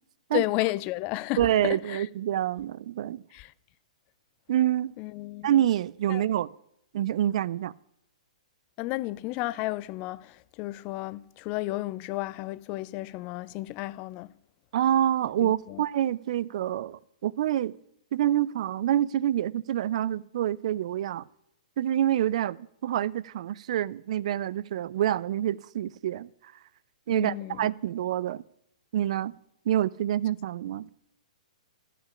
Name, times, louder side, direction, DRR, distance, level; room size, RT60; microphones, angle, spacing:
voice 1, 0.3-2.1 3.3-3.5 5.0-5.5 6.1-6.2 8.8-14.3 15.4-15.8 27.1-27.7, left 19 dB, 35° left, 0.4 m, -32 dB
voice 2, 1.4-3.2 4.5-4.9 5.4-6.5 6.9-7.7 14.7-17.8 18.1-21.2 21.8-26.3 27.1-28.4 28.9-29.4 29.7-30.9, right 11 dB, 60° right, 0.4 m, -27 dB
14.0 x 5.8 x 8.3 m
hypercardioid pair, 135°, 4 cm